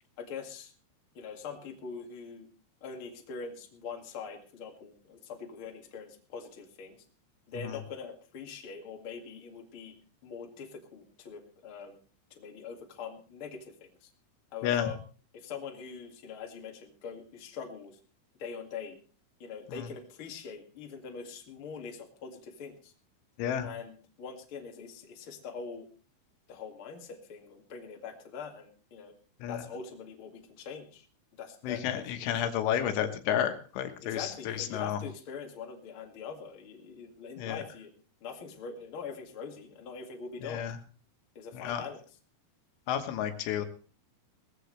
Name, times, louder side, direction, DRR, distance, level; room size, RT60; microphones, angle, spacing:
voice 1, 0.2-0.7 1.1-2.5 2.8-7.0 7.5-9.9 10.2-12.0 12.3-14.1 14.5-15.0 15.3-18.0 18.4-19.0 19.4-22.9 23.6-25.9 26.5-29.1 29.5-31.0 31.3-32.9 34.0-37.9 38.2-40.7 41.4-42.0, left 6 dB, 45° left, 2 dB, 1.7 m, -43 dB
voice 2, 31.6-35.0 37.4-37.6 40.4-40.8 41.5-41.8 42.9-43.7, left 10 dB, 80° left, 7 dB, 3.7 m, -31 dB
19.0 x 15.0 x 3.3 m, 0.39 s
omnidirectional pair, 5.6 m